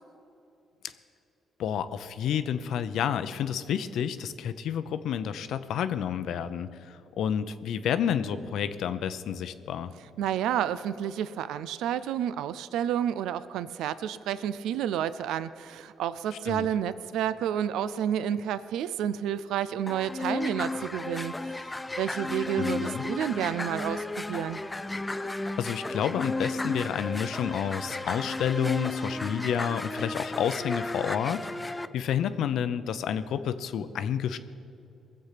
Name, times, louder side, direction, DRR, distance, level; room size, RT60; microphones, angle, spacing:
voice 1, 1.6-9.9 16.5-16.7 22.6-23.0 25.6-34.4, left 8 dB, 75° left, 12 dB, 0.6 m, -30 dB
voice 2, 10.2-21.6 22.0-24.6, right 10 dB, 85° right, 15 dB, 0.4 m, -30 dB
sound 1, 19.9-31.8, left 2 dB, 15° left, 0.4 m, -34 dB
20.5 x 7.8 x 5.9 m, 2.7 s
cardioid pair, 90°, 0 cm